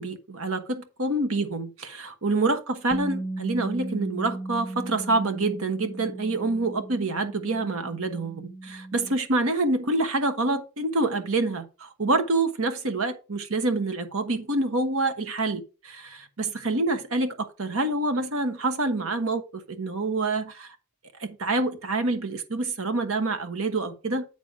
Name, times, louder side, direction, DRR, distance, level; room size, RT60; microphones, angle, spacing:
voice 1, 0.0-20.7 21.2-24.2, right 2 dB, 75° right, 1.2 m, -27 dB
Bass guitar, 2.9-9.2, right 2 dB, 15° left, 0.8 m, -36 dB
8.9 x 4.0 x 5.0 m
head